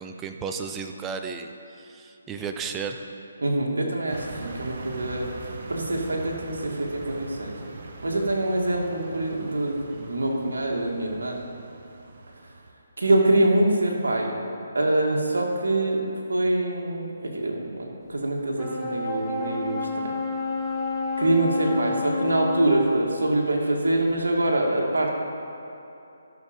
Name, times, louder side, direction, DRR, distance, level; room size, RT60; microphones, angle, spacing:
voice 1, 0.0-1.5 1.8-3.0, right 5 dB, 15° right, 5 dB, 0.6 m, -33 dB
voice 2, 3.4-5.3 5.7-7.5 8.0-11.4 13.0-14.3 14.7-16.0 16.3-19.9 21.2-25.1, right 1 dB, 85° right, 0 dB, 2.0 m, -24 dB
sound 1, 4.1-12.7, right 3 dB, 55° right, 1.1 m, -41 dB
sound 2, 18.6-23.0, left 3 dB, 5° left, 1.6 m, -29 dB
12.5 x 6.5 x 5.2 m, 2.8 s
hypercardioid pair, 155°, 0 cm